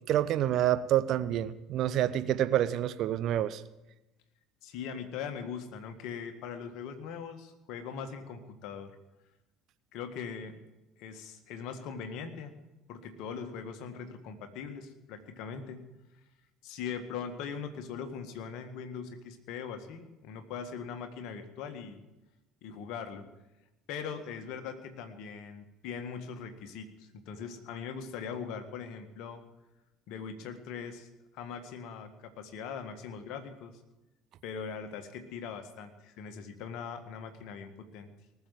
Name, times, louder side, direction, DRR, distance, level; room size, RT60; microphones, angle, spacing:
voice 1, 0.1-3.6, right 12 dB, 50° right, 14 dB, 0.7 m, -28 dB
voice 2, 4.6-8.9 9.9-10.6 11.0-12.5 12.9-15.8 16.6-22.0 22.6-23.3 23.9-29.4 30.1-33.8 34.4-38.1, left 6 dB, 60° left, 7 dB, 1.8 m, -41 dB
19.0 x 7.2 x 9.1 m, 1.0 s
figure-of-eight pair, 60°, 0 cm